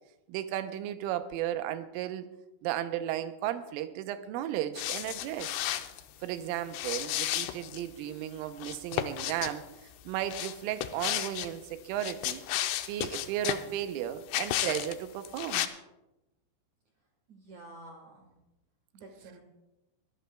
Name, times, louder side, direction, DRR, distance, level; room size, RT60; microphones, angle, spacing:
voice 1, 0.3-2.3 2.6-5.5 6.2-9.6 10.1-12.4 12.9-15.7, right 12 dB, 90° right, 10 dB, 3.3 m, -34 dB
sound 1, 4.8-6.0 6.7-7.8 8.6-9.5 10.3-11.5 11.9-13.7 14.3-14.9 15.2-15.7, left 13 dB, 85° left, 2.5 m, -33 dB
voice 2, 17.3-18.3 18.9-19.4, right 2 dB, 70° right, 1 dB, 1.8 m, -49 dB
24.0 x 13.5 x 2.3 m, 0.97 s
omnidirectional pair, 5.6 m